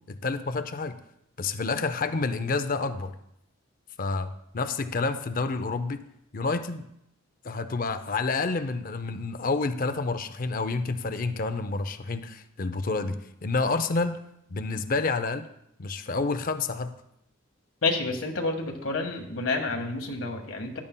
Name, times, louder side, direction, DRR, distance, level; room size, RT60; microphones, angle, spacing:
voice 1, 0.1-1.0 1.4-3.1 4.0-6.0 6.3-6.8 7.4-14.2 14.5-15.5 15.8-16.9, left 3 dB, 45° left, 11 dB, 0.5 m, -29 dB
voice 2, 17.8-20.8, left 3 dB, 80° left, 3 dB, 1.6 m, -29 dB
14.0 x 11.0 x 2.2 m, 0.78 s
head